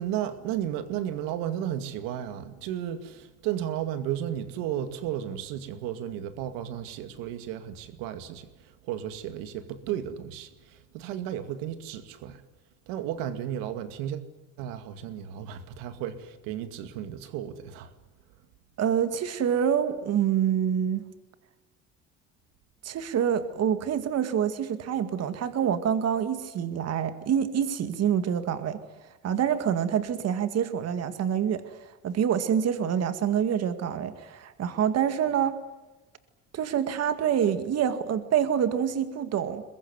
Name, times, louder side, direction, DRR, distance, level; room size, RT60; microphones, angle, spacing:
voice 1, 0.0-12.4 12.9-14.2 14.6-17.9, right 10 dB, 90° right, 2.3 m, -34 dB
voice 2, 18.8-21.1 22.8-28.8 29.2-35.5 36.5-39.6, right 8 dB, 50° right, 2.1 m, -26 dB
23.0 x 21.5 x 9.7 m
cardioid pair, 110°, 33 cm